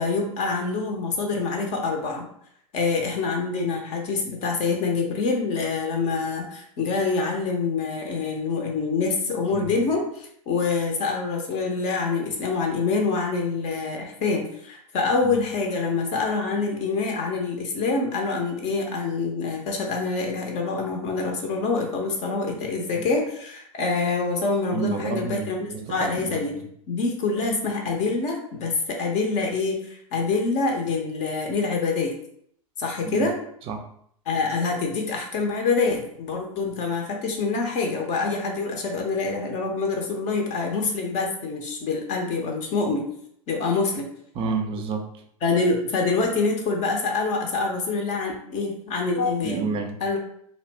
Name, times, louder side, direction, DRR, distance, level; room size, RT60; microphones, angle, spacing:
voice 1, 0.0-2.3 2.7-26.5 26.9-32.2 32.8-33.4 34.3-43.1 43.5-44.1 45.4-49.7 50.0-50.2, left 4 dB, 40° left, 1 dB, 0.6 m, -26 dB
voice 2, 24.7-25.9 26.2-26.4 33.0-33.3 33.7-33.8 44.4-45.1 49.4-50.0, right 5 dB, 30° right, 5 dB, 0.5 m, -29 dB
2.4 x 2.0 x 3.3 m, 0.67 s
figure-of-eight pair, 95°, 19 cm